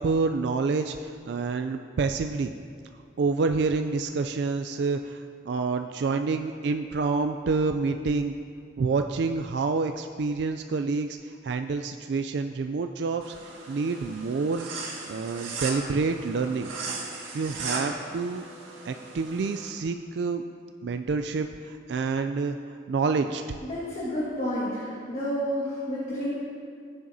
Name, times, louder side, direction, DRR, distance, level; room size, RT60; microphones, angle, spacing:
voice 1, 0.0-2.5 3.2-8.4 8.8-13.3 13.7-14.7 15.1-16.7 17.3-18.5 18.8-20.4 20.8-22.6 22.9-23.4, right 4 dB, 60° right, 7 dB, 0.3 m, -28 dB
sound 1, 13.2-19.7, right 3 dB, 85° right, 1.8 m, -37 dB
voice 2, 23.7-26.3, equal, 35° left, -8 dB, 1.7 m, -30 dB
17.5 x 7.6 x 2.7 m, 2.2 s
head